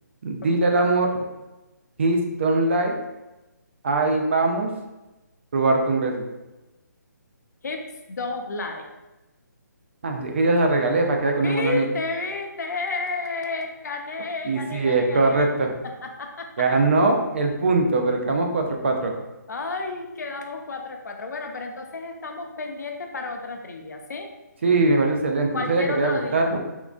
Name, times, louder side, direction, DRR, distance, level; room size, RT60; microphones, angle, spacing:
voice 1, 0.2-1.2 2.0-2.9 3.8-4.7 5.5-6.2 10.0-11.9 14.4-15.7 16.6-19.1 24.6-26.6, right 2 dB, 40° right, 3 dB, 0.4 m, -21 dB
voice 2, 7.6-8.9 11.4-15.5 15.8-16.5 19.5-24.3 25.5-26.5, left 3 dB, 65° left, 4 dB, 0.5 m, -31 dB
3.6 x 2.2 x 2.4 m, 1.0 s
hypercardioid pair, 170°, 10 cm